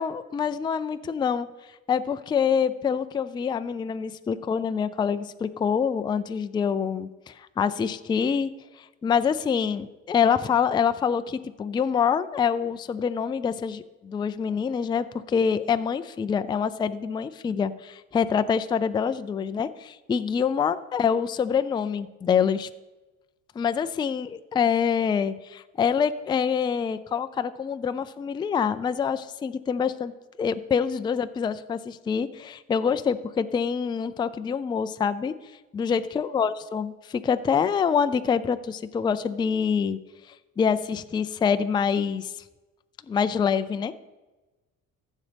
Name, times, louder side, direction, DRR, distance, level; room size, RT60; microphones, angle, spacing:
voice 1, 0.0-1.5 1.9-8.5 8.8-22.7 23.6-30.1 30.4-35.3 35.7-40.0 40.3-42.4 43.1-43.9, left 7 dB, 15° left, 11 dB, 0.3 m, -26 dB
14.5 x 7.3 x 3.4 m, 1.1 s
cardioid pair, 125°, 30 cm